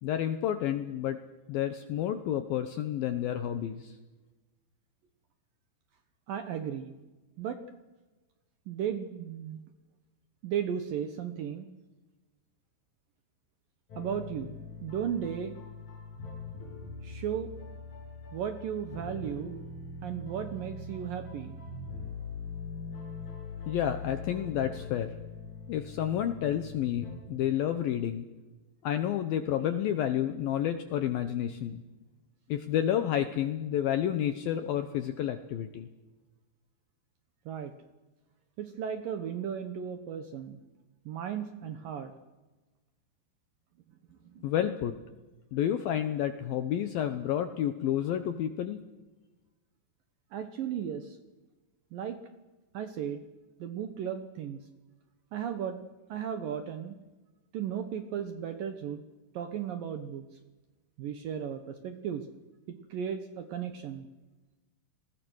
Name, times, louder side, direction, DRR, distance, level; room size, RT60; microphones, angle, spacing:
voice 1, 0.0-1.2 1.5-3.9 23.7-25.1 25.7-28.3 28.8-31.8 32.5-35.9 44.4-44.9 45.5-48.8, left 10 dB, 75° left, 9 dB, 2.2 m, -30 dB
voice 2, 6.3-6.9 7.4-7.6 8.7-9.6 10.4-11.7 14.0-15.6 17.0-17.5 18.3-19.6 20.0-21.6 37.5-37.7 38.6-40.6 41.1-42.1 44.1-44.5 50.3-51.2 51.9-52.2 52.7-53.2 53.6-54.6 55.3-55.8 56.1-57.0 57.5-59.0 59.3-60.3 61.0-62.3 62.7-64.1, right 8 dB, 70° right, 9 dB, 2.2 m, -35 dB
sound 1, 13.9-27.2, left 4 dB, 40° left, 8.2 m, -42 dB
30.0 x 20.5 x 6.4 m, 1.2 s
omnidirectional pair, 5.4 m